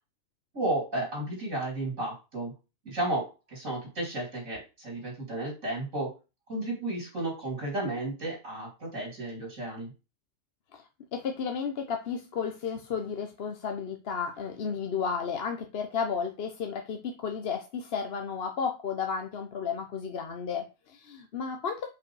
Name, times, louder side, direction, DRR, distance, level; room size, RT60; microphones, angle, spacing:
voice 1, 0.5-2.5 2.8-6.1 6.5-9.9, right 1 dB, 65° right, -2 dB, 3.3 m, -33 dB
voice 2, 10.7-21.9, left 6 dB, 50° left, 4 dB, 0.9 m, -33 dB
5.3 x 5.0 x 4.7 m, 0.29 s
omnidirectional pair, 1.4 m